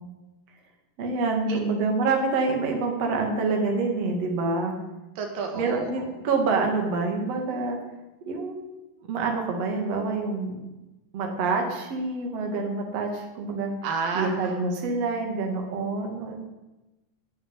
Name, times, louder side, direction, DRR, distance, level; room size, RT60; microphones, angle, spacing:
voice 1, 1.0-4.8 5.5-7.8 8.3-8.6 9.1-10.6 11.1-13.7 14.1-16.4, right 3 dB, 50° right, 2 dB, 3.1 m, -27 dB
voice 2, 5.2-6.1 13.8-14.3, right 4 dB, 80° right, 3 dB, 3.4 m, -30 dB
16.5 x 7.1 x 9.1 m, 1.1 s
omnidirectional pair, 3.9 m